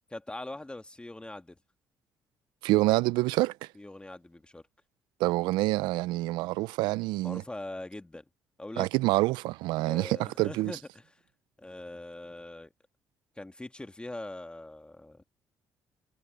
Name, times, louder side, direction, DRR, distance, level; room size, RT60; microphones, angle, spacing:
voice 1, 0.1-1.6 3.8-4.6 7.2-8.3 8.6-8.9 9.9-11.2 11.6-12.7 13.4-15.2, left 2 dB, 15° left, 1.8 m, -42 dB
voice 2, 2.6-3.5 5.2-7.4 8.8-10.7, right 19 dB, 85° right, 0.5 m, -27 dB
supercardioid pair, 70°, 8 cm